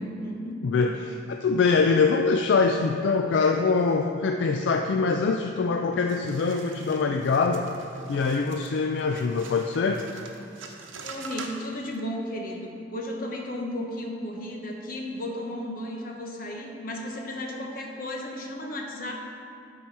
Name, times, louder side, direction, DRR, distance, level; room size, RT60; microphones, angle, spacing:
voice 1, 0.0-0.6 11.0-19.1, left 1 dB, 45° left, 0 dB, 1.1 m, -34 dB
voice 2, 0.6-7.7 8.1-10.1, left 4 dB, 70° left, 4 dB, 0.3 m, -24 dB
sound 1, 6.1-12.0, right 4 dB, 90° right, 0.8 m, -44 dB
12.5 x 4.5 x 4.6 m, 2.5 s
head